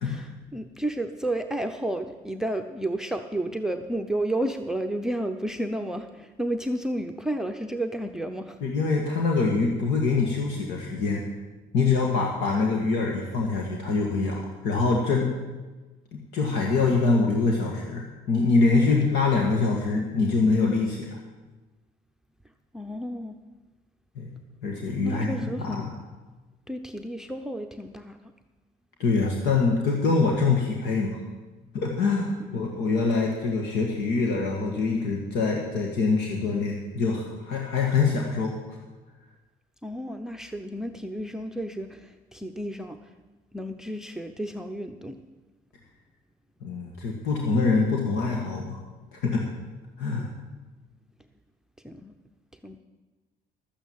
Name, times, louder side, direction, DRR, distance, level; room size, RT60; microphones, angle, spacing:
voice 1, 0.0-8.6 22.7-23.4 25.0-25.9 26.7-28.2 32.4-32.9 39.8-43.0 43.5-45.1 50.0-50.3 51.8-52.1 52.6-52.8, right 1 dB, 5° right, 7 dB, 0.6 m, -32 dB
voice 2, 8.6-11.2 11.7-15.3 16.1-21.2 24.1-24.3 24.6-25.9 29.0-31.2 31.7-38.5 46.6-48.8 49.1-49.4 50.0-50.3, left 4 dB, 85° left, 0 dB, 1.8 m, -24 dB
12.5 x 9.0 x 7.4 m, 1.2 s
cardioid pair, 110°, 17 cm